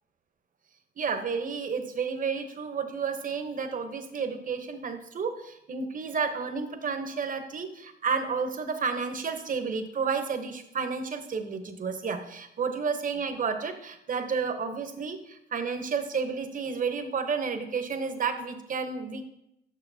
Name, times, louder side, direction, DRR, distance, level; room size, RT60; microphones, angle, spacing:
voice 1, 1.0-19.3, right 5 dB, 40° right, 7 dB, 0.9 m, -31 dB
8.3 x 6.3 x 2.7 m, 0.80 s
cardioid pair, 90°, 20 cm